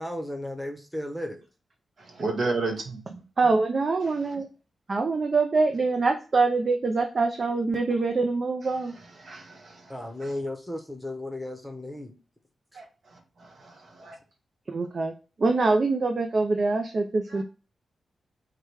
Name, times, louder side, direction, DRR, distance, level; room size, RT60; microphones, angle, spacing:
voice 1, 0.0-1.4 2.6-2.7 9.9-12.1 12.7-12.8, left 1 dB, ahead, 5 dB, 0.9 m, -34 dB
voice 2, 2.0-3.2 4.0-4.3 9.2-9.9 10.2-10.3 12.7-12.8 13.1-14.2 17.3-17.4, right 3 dB, 65° right, 2 dB, 1.3 m, -33 dB
voice 3, 3.4-4.5 4.9-8.9 14.7-15.1 15.4-17.4, right 3 dB, 50° right, 5 dB, 0.5 m, -24 dB
4.8 x 2.2 x 4.6 m, 0.34 s
cardioid pair, 80°, 0 cm